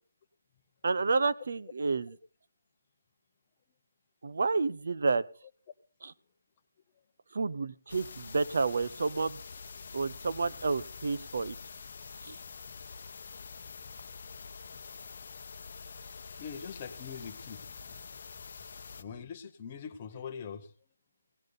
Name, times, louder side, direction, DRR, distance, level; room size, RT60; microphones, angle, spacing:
voice 1, 0.8-2.1 4.2-5.2 6.0-6.1 7.3-9.4 9.9-11.5 12.2-12.4, right 4 dB, 45° right, 14 dB, 0.7 m, -30 dB
sound 1, 7.9-19.0, left 5 dB, 35° left, 1.0 m, -46 dB
voice 2, 16.4-18.2 19.0-20.7, left 6 dB, 15° left, 4 dB, 1.0 m, -43 dB
17.5 x 12.0 x 4.0 m, 0.38 s
hypercardioid pair, 175°, 0 cm